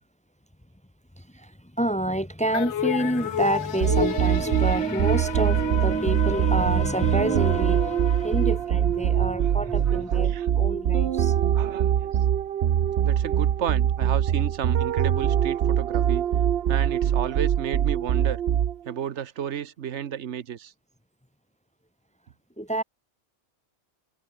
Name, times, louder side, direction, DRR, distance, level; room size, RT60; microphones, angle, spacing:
voice 1, 1.8-11.3 22.6-22.8, right 1 dB, 5° left, 0.8 m, -28 dB
sound 1, 2.5-9.1, left 10 dB, 85° left, 1.0 m, -32 dB
sound 2, 3.8-19.0, right 10 dB, 65° right, 1.0 m, -23 dB
voice 2, 9.4-10.5 11.5-12.1 13.0-16.2 16.7-18.4 18.8-20.7, right 9 dB, 85° right, 1.2 m, -33 dB
omnidirectional pair, 1.1 m